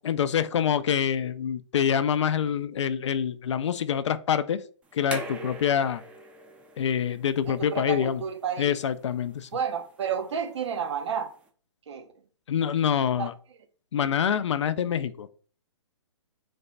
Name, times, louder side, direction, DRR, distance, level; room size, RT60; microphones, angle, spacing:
voice 1, 0.0-4.6 4.9-6.0 6.8-8.2 8.6-9.5 12.5-13.3 13.9-15.3, left 8 dB, 70° left, 0.4 m, -26 dB
sound 1, 4.8-11.5, right 2 dB, 5° right, 0.4 m, -44 dB
voice 2, 7.5-8.8 9.5-11.3 11.9-12.1 13.2-13.3, right 7 dB, 65° right, 0.5 m, -31 dB
3.3 x 2.1 x 3.9 m
hypercardioid pair, 135°, 16 cm